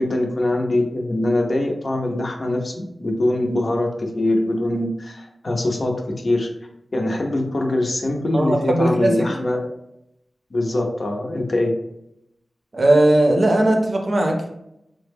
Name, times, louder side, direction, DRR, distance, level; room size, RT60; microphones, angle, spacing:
voice 1, 0.0-6.5 6.9-9.7 10.5-11.8, left 1 dB, 50° left, 2 dB, 0.5 m, -23 dB
voice 2, 8.3-9.2 12.7-14.5, right 1 dB, 55° right, 2 dB, 0.6 m, -18 dB
3.4 x 2.1 x 3.4 m, 0.82 s
wide cardioid pair, 80°, 0 cm